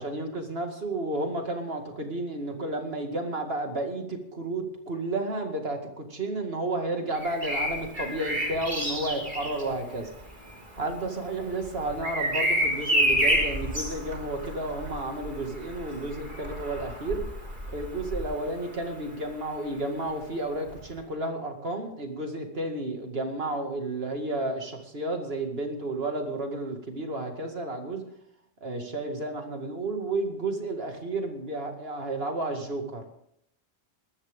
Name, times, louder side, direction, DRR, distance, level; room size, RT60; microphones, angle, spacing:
voice 1, 0.0-10.1 10.8-17.2 17.7-28.0 28.6-33.0, right 2 dB, 65° right, 4 dB, 2.4 m, -32 dB
Bird vocalization bird call bird song, 7.1-18.9 20.7-20.9, equal, 45° right, 4.2 m, -30 dB
21.0 x 12.5 x 3.6 m, 0.72 s
omnidirectional pair, 1.1 m